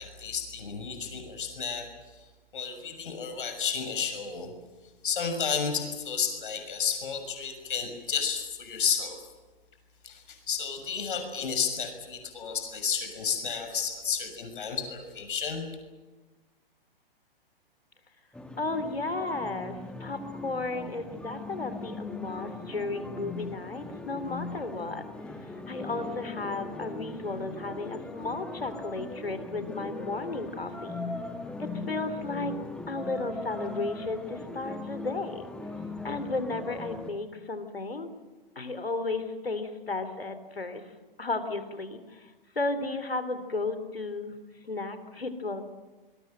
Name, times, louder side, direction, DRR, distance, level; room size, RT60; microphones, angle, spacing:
voice 1, 0.0-1.8 2.5-4.5 5.0-9.2 10.0-15.7, left 6 dB, 60° left, 5 dB, 6.4 m, -32 dB
sound 1, 18.3-37.1, left 3 dB, 5° left, 2.0 m, -39 dB
voice 2, 18.6-25.0 25.5-31.1 31.6-32.5 32.9-35.5 36.0-38.1 38.5-40.8 41.2-42.3 42.5-44.3 44.6-45.6, left 3 dB, 85° left, 10 dB, 3.3 m, -34 dB
27.0 x 21.5 x 7.8 m, 1.3 s
figure-of-eight pair, 115°, 29 cm